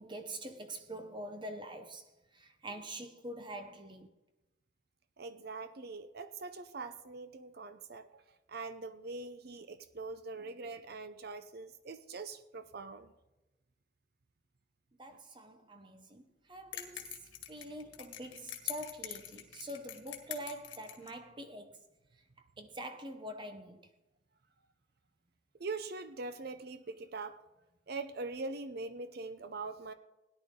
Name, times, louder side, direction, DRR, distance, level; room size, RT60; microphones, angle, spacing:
voice 1, 0.0-4.1 15.0-21.8 22.6-23.8, right 1 dB, 25° right, 0.8 m, -45 dB
voice 2, 5.2-8.2 8.5-13.1 25.6-27.4 27.9-29.9, right 3 dB, 55° right, 0.7 m, -43 dB
sound 1, 16.7-21.1, left 11 dB, 80° left, 1.7 m, -44 dB
17.5 x 10.5 x 3.7 m
head